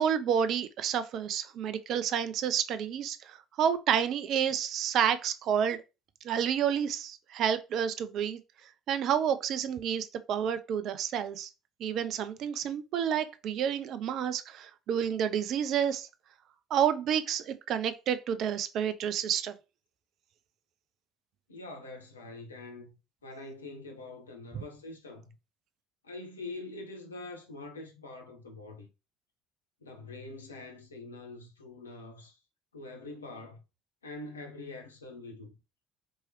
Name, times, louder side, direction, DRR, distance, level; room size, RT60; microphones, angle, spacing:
voice 1, 0.0-5.8 6.2-8.4 8.9-11.5 11.8-16.1 16.7-19.5 24.5-24.6, right 8 dB, 50° right, 0.4 m, -29 dB
voice 2, 21.5-23.0 23.2-25.3 26.0-28.9 29.8-32.4 32.7-33.6 34.0-35.5, left 2 dB, 80° left, 0.7 m, -44 dB
4.5 x 3.0 x 3.0 m
figure-of-eight pair, 55°, 0 cm